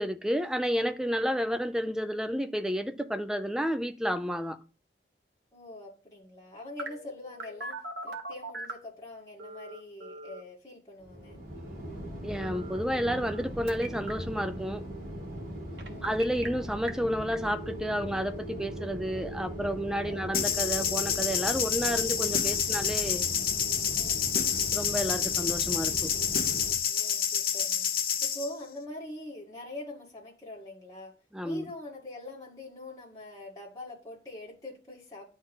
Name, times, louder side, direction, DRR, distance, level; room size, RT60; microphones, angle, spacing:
voice 1, 0.0-4.6 12.2-14.8 16.0-23.3 24.7-26.1 31.3-31.7, equal, 5° right, 0.5 m, -31 dB
voice 2, 5.5-11.4 15.5-16.1 19.1-19.3 20.0-20.3 23.9-24.3 26.8-27.9 28.2-31.1 31.4-35.3, left 1 dB, 20° left, 2.1 m, -44 dB
Telephone, 6.8-8.9 9.4-10.4 12.4-13.4 13.7-14.1 15.8-16.5 16.9-17.0 17.3-22.4, right 2 dB, 75° right, 1.6 m, -42 dB
sound 1, 11.0-26.8, equal, 50° right, 2.7 m, -40 dB
sound 2, 20.3-28.5, left 8 dB, 55° left, 1.0 m, -28 dB
11.0 x 4.0 x 5.4 m
head